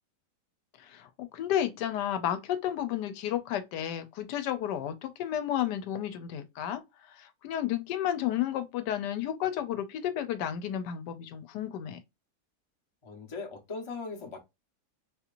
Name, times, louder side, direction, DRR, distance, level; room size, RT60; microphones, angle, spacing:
voice 1, 0.9-6.8 7.4-12.0, left 11 dB, 90° left, 1.2 m, -32 dB
voice 2, 13.0-14.4, left 4 dB, 25° left, 0.7 m, -39 dB
4.0 x 2.9 x 2.5 m
omnidirectional pair, 1.8 m